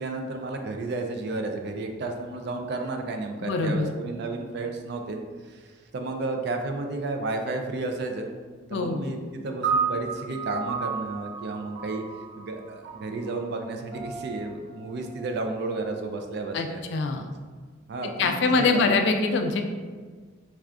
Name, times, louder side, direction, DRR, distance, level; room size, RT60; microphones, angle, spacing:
voice 1, 0.0-8.3 8.7-12.0 12.4-16.8 17.9-18.9, right 2 dB, 55° right, 4 dB, 0.4 m, -32 dB
voice 2, 3.4-3.9 8.7-9.0 16.5-17.3 18.2-19.6, left 3 dB, 60° left, 5 dB, 0.3 m, -24 dB
sound 1, 9.6-16.1, right 6 dB, 75° right, 1.0 m, -33 dB
4.3 x 2.4 x 2.4 m, 1.5 s
head